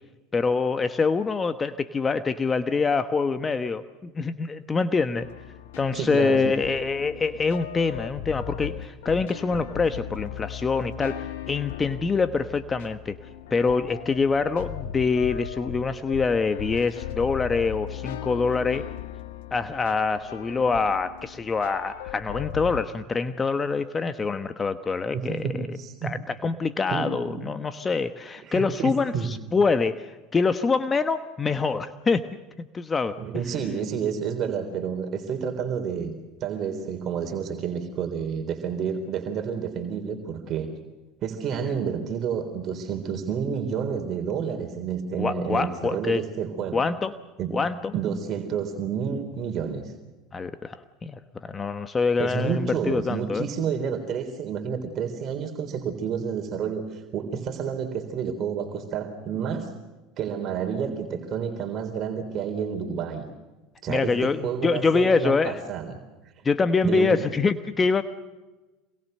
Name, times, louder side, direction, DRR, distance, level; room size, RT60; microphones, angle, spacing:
voice 1, 0.3-5.3 5.8-13.2 13.5-18.8 19.5-32.2 32.6-33.2 45.2-46.2 46.7-47.1 47.5-47.9 50.3-53.5 63.9-65.6 66.4-68.0, left 4 dB, 25° left, 10 dB, 1.2 m, -25 dB
sound 1, 5.2-22.8, left 11 dB, 75° left, 1.7 m, -38 dB
voice 2, 5.9-6.6 25.1-26.2 26.9-27.5 28.4-29.3 33.2-36.1 36.4-40.7 41.2-46.8 47.4-47.6 47.9-49.9 52.2-59.7 60.2-63.3 63.8-66.0 66.4-66.5 66.8-67.2, right 7 dB, 45° right, 5 dB, 3.6 m, -30 dB
27.0 x 22.0 x 6.7 m, 1.2 s
hypercardioid pair, 85°, 0 cm